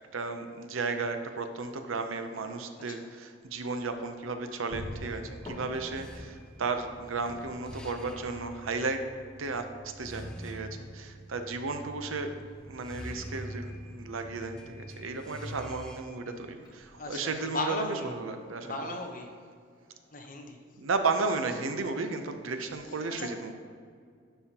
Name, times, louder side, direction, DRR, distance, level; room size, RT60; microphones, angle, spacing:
voice 1, 0.1-9.0 9.4-9.7 10.0-10.7 10.9-12.3 12.7-19.0 20.7-23.6, right 4 dB, 80° right, 7 dB, 0.7 m, -34 dB
voice 2, 2.4-3.1 17.0-18.1 18.6-19.4 20.1-20.6 22.9-23.4, left 2 dB, 40° left, 3 dB, 0.8 m, -37 dB
sound 1, 4.4-17.8, left 1 dB, 20° left, 1.2 m, -51 dB
sound 2, 4.9-16.0, equal, 5° left, 0.4 m, -45 dB
11.0 x 5.6 x 2.9 m, 2.1 s
head